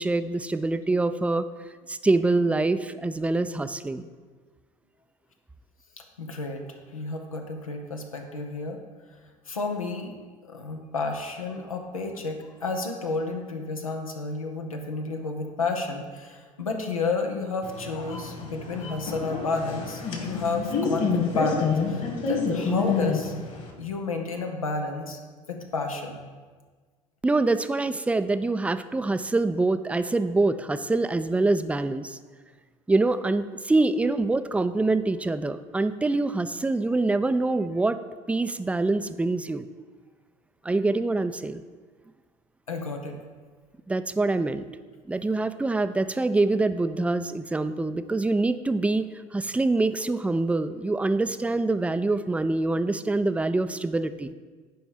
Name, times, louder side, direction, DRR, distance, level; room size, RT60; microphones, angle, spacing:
voice 1, 0.0-1.5 1.9-4.0 27.2-32.2 32.9-38.0 38.3-39.7 40.6-41.6 43.9-44.6 45.1-54.3, right 2 dB, 5° right, 12 dB, 0.4 m, -25 dB
voice 2, 6.2-6.6 6.9-8.8 9.5-10.1 10.5-23.3 23.8-25.2 25.5-26.2 42.7-43.2, left 3 dB, 85° left, 3 dB, 0.9 m, -31 dB
sound 1, 17.6-23.7, left 5 dB, 45° left, 1.9 m, -28 dB
10.5 x 5.2 x 5.1 m, 1.5 s
figure-of-eight pair, 60°, 17 cm